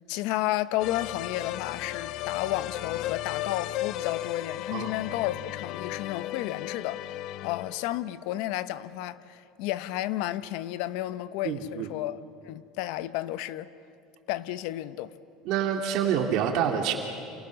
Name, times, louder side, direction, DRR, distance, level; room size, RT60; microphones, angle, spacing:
voice 1, 0.1-7.2 7.4-13.7 14.3-15.1, left 15 dB, 70° left, 0.9 m, -32 dB
sound 1, 0.8-8.0, left 14 dB, 55° left, 0.6 m, -35 dB
voice 2, 11.4-11.9 15.5-16.9, right 8 dB, 60° right, 2.3 m, -27 dB
29.0 x 28.0 x 6.4 m
cardioid pair, 145°, 0 cm